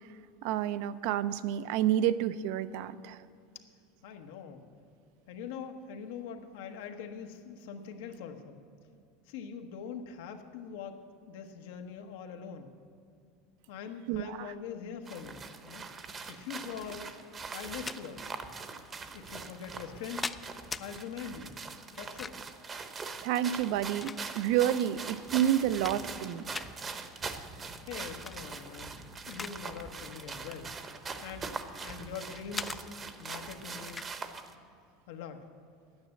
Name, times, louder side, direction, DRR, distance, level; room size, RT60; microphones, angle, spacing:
voice 1, 0.4-3.2 14.1-14.5 23.2-26.4, right 11 dB, 65° right, 14 dB, 0.5 m, -29 dB
voice 2, 4.0-4.6 5.3-8.6 9.3-11.0 11.3-12.7 13.7-15.9 16.3-17.1 17.5-18.2 19.1-20.3 20.8-21.6 22.0-22.4 27.8-30.7 31.2-31.5 31.8-32.9 33.2-34.0 35.1-35.4, left 7 dB, 80° left, 5 dB, 1.2 m, -43 dB
sound 1, 15.1-34.5, right 4 dB, 20° right, 0.8 m, -42 dB
sound 2, 17.6-18.0 18.9-19.0 19.8-20.9 21.9-22.6 23.5-24.6 25.1-25.2 25.6-26.2 26.5-26.7 28.1-28.4 28.8-29.6 29.9-30.1 30.9-32.0 32.5-32.8 33.9-34.1, left 4 dB, 15° left, 0.3 m, -40 dB
10.5 x 9.6 x 7.7 m, 2.4 s
supercardioid pair, 140°, 0 cm